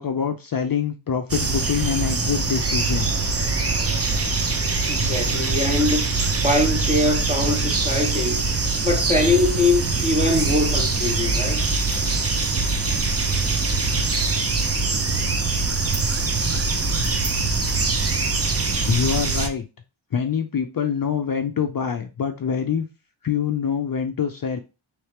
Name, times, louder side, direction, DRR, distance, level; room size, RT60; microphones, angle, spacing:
voice 1, 0.0-3.3 18.9-19.6 20.1-22.9 23.2-24.6, left 7 dB, 45° left, 0.5 m, -25 dB
sound 1, 1.3-19.5, right 3 dB, 30° right, 0.6 m, -23 dB
voice 2, 4.9-6.1 6.4-8.4 8.8-11.6, left 2 dB, 15° right, 1.0 m, -22 dB
4.4 x 3.2 x 3.3 m
wide cardioid pair, 145°, 50 cm